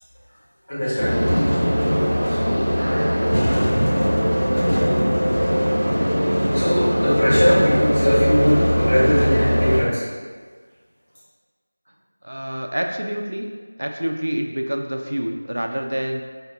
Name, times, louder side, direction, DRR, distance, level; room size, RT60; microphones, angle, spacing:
voice 1, 0.7-1.8 2.2-2.4 2.8-3.4 3.8-3.9 6.5-10.0, equal, 45° left, -9 dB, 1.3 m, -22 dB
sound 1, 1.0-9.8, equal, 75° left, 1.2 m, -20 dB
voice 2, 12.2-13.5 13.8-16.2, equal, 65° right, 3 dB, 0.3 m, -27 dB
5.0 x 2.3 x 2.8 m, 1.5 s
figure-of-eight pair, 175°, 0 cm